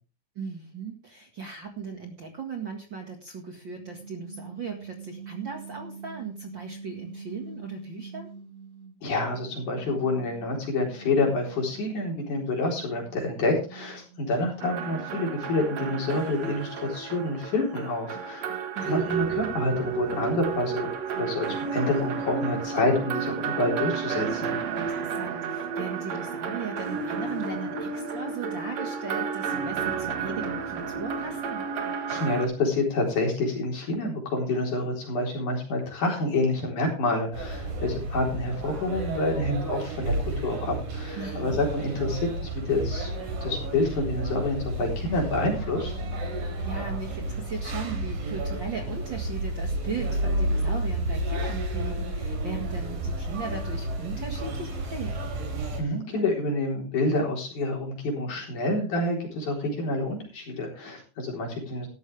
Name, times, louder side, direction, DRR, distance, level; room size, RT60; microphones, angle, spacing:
voice 1, 0.4-8.3 18.8-19.1 24.8-31.6 41.2-41.6 46.3-55.1, right 5 dB, 40° right, 3 dB, 2.1 m, -37 dB
sound 1, 3.7-8.9 9.3-15.5, right 5 dB, 35° left, 2.8 m, -45 dB
voice 2, 9.0-18.5 18.8-20.9 21.2-24.6 32.1-43.1 43.4-45.9 55.8-61.9, left 2 dB, 60° left, 0 dB, 5.4 m, -28 dB
sound 2, 14.6-32.5, right 6 dB, 55° right, 2.5 m, -32 dB
sound 3, 37.3-55.8, right 1 dB, 75° right, 5.3 m, -31 dB
14.0 x 12.5 x 3.4 m, 0.34 s
omnidirectional pair, 4.0 m